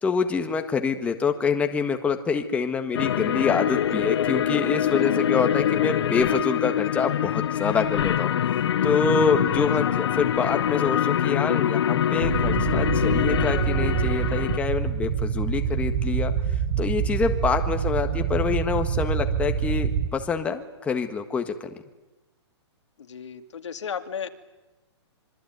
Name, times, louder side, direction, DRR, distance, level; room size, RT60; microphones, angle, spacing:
voice 1, 0.0-8.3 8.8-16.3 16.8-21.5, left 5 dB, 10° left, 6 dB, 1.6 m, -26 dB
sound 1, 2.9-14.6, left 10 dB, 65° left, 1.1 m, -24 dB
sound 2, 12.2-20.1, right 7 dB, 50° right, 2.1 m, -26 dB
voice 2, 23.0-24.3, left 7 dB, 85° left, 7 dB, 2.6 m, -34 dB
26.0 x 24.0 x 9.5 m, 1.1 s
hypercardioid pair, 160°, 15 cm